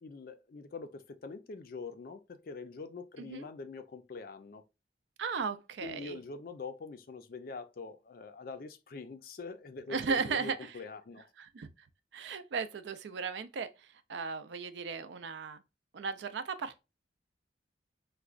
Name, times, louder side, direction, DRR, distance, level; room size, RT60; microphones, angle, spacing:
voice 1, 0.0-4.6 5.8-11.3, left 4 dB, 50° left, 0.4 m, -44 dB
voice 2, 5.2-6.2 9.9-10.8 11.4-11.7 12.1-15.6 15.9-16.8, right 5 dB, 70° right, 0.4 m, -36 dB
4.7 x 2.2 x 2.4 m
head